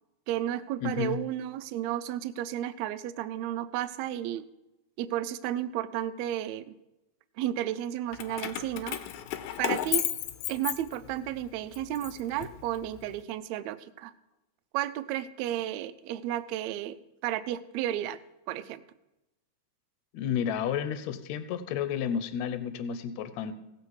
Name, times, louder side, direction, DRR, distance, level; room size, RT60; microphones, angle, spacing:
voice 1, 0.3-4.5 5.0-6.7 7.4-9.0 9.6-10.0 10.5-14.1 14.7-17.0 17.2-18.2 18.5-18.8, right 12 dB, 80° right, 12 dB, 1.8 m, -32 dB
voice 2, 0.8-1.2 20.1-23.5, left 8 dB, 75° left, 11 dB, 1.9 m, -31 dB
Keys jangling, 8.1-11.3 11.7-13.0, left 12 dB, 90° left, 2.2 m, -33 dB
17.0 x 7.5 x 4.7 m, 0.97 s
omnidirectional pair, 3.4 m